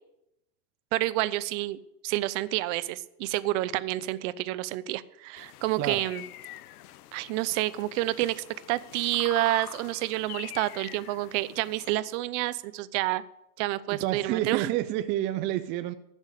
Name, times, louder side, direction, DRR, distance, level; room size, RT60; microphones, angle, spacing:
voice 1, 0.9-1.8 2.0-6.2 7.1-13.2 13.6-14.7, right 17 dB, 55° right, 0.7 m, -29 dB
sound 1, 5.4-12.0, left 14 dB, 85° left, 0.8 m, -44 dB
voice 2, 13.9-15.9, right 13 dB, 25° right, 0.3 m, -29 dB
15.0 x 6.3 x 6.6 m
supercardioid pair, 145°, 44 cm